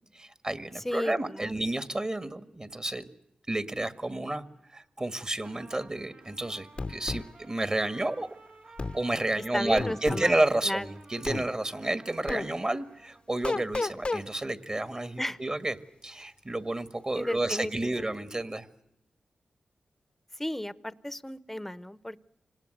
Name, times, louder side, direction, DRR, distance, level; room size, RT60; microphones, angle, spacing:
voice 1, 0.1-3.0 3.5-4.4 4.7-8.3 8.9-15.7 16.0-18.7, right 1 dB, 30° right, 12 dB, 1.8 m, -30 dB
voice 2, 0.8-1.5 9.5-10.3 10.7-10.8 15.2-15.4 17.1-17.7 18.0-18.1 20.4-22.2, left 1 dB, 10° left, 17 dB, 1.0 m, -33 dB
Trumpet, 5.4-13.3, right 2 dB, 80° right, 5.4 m, -54 dB
sound 1, 6.8-7.3 8.8-9.0 9.8-10.3 11.3-11.5 12.3-12.5 13.4-14.2, left 3 dB, 40° left, 0.8 m, -31 dB
26.0 x 19.0 x 7.9 m, 0.81 s
cardioid pair, 55°, 3 cm